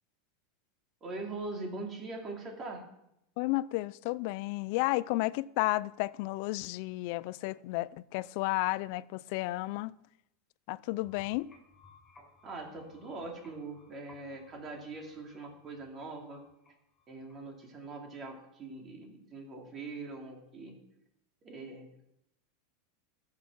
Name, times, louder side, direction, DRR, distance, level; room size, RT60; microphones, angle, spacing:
voice 1, 1.0-2.8 12.4-16.4 17.1-20.8 21.4-21.9, right 3 dB, 25° right, 2.8 m, -42 dB
voice 2, 3.4-10.0 10.7-11.5, left 20 dB, 55° left, 0.4 m, -32 dB
sound 1, 10.9-17.7, left 3 dB, 10° left, 4.5 m, -61 dB
15.0 x 6.6 x 6.1 m
supercardioid pair, 150°, 0 cm